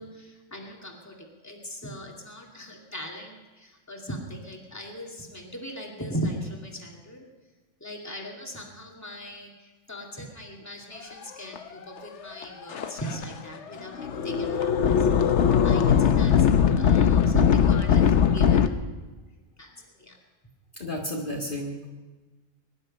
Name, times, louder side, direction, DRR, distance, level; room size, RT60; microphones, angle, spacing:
voice 1, 0.0-7.3 7.8-18.7 19.6-19.7 20.0-20.2, equal, 10° left, -1 dB, 2.4 m, -38 dB
sound 1, 11.5-11.6 12.4-12.5 12.7-13.3 13.9-18.7, left 8 dB, 65° left, 1.1 m, -20 dB
voice 2, 20.8-21.9, left 1 dB, 40° left, -1 dB, 1.9 m, -33 dB
23.0 x 11.0 x 5.4 m, 1.2 s
omnidirectional pair, 1.4 m